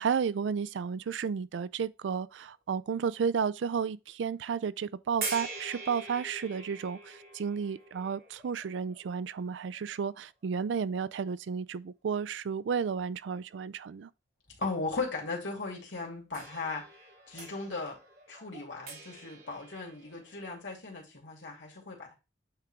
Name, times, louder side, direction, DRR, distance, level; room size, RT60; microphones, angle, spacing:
voice 1, 0.0-14.1, right 6 dB, 85° right, 0.4 m, -32 dB
sound 1, 5.2-10.3 11.1-11.2 16.3-20.6, right 4 dB, 50° right, 2.7 m, -44 dB
voice 2, 14.6-16.9 17.3-18.0 18.3-22.1, left 3 dB, 90° left, 2.5 m, -37 dB
8.7 x 3.7 x 3.4 m
head